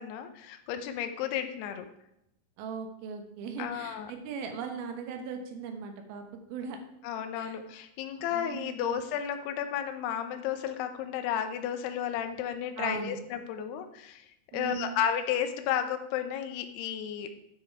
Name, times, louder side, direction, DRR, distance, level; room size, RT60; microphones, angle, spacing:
voice 1, 0.0-1.9 3.6-4.1 7.0-14.3 14.5-17.3, left 9 dB, 85° left, 8 dB, 2.8 m, -33 dB
voice 2, 2.6-6.8 7.4-7.6 8.3-9.0 12.8-13.2 14.5-15.0, right 6 dB, 75° right, 5 dB, 2.9 m, -39 dB
10.0 x 6.1 x 4.7 m, 0.81 s
omnidirectional pair, 4.6 m